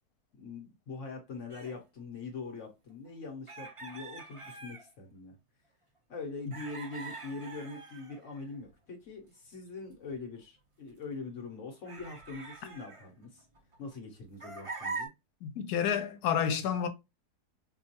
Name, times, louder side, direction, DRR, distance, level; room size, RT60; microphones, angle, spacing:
voice 1, 0.3-5.4 6.1-13.5 13.8-15.1, left 3 dB, 55° left, 1.1 m, -43 dB
sound 1, 1.5-1.8 3.5-4.9 6.5-8.7 9.9-10.2 10.9-11.0 11.8-13.9 14.4-15.1, right 3 dB, 60° right, 0.3 m, -43 dB
voice 2, 15.4-16.9, left 8 dB, 85° left, 1.2 m, -30 dB
4.4 x 2.3 x 2.7 m
omnidirectional pair, 1.7 m